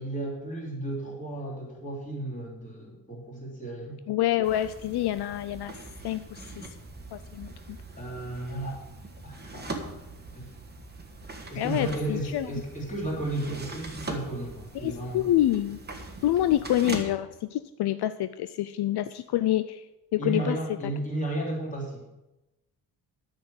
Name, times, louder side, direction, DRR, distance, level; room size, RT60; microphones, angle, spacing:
voice 1, 0.0-4.0 8.0-8.8 9.2-10.0 10.3-10.5 11.5-15.2 20.2-22.1, right 1 dB, 20° left, -3 dB, 3.4 m, -34 dB
voice 2, 4.1-5.8 6.0-6.7 7.1-7.5 11.6-12.5 14.8-15.8 16.2-19.9 20.1-20.6, left 13 dB, 70° left, 12 dB, 0.5 m, -27 dB
sound 1, 4.4-17.0, right 3 dB, 25° right, 1.4 m, -41 dB
10.5 x 6.6 x 7.9 m, 0.99 s
wide cardioid pair, 165°, 41 cm